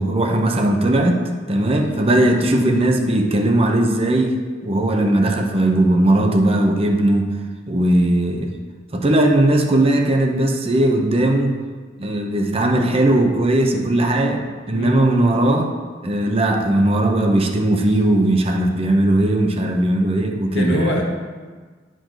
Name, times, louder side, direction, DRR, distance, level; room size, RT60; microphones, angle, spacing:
voice 1, 0.0-4.4 4.6-7.3 7.7-8.5 8.9-11.5 12.0-15.7 16.0-21.0, right 1 dB, 35° right, 2 dB, 0.7 m, -18 dB
voice 2, 14.7-15.2 20.5-21.0, equal, 70° left, -1 dB, 1.4 m, -24 dB
10.5 x 5.1 x 3.9 m, 1.5 s
head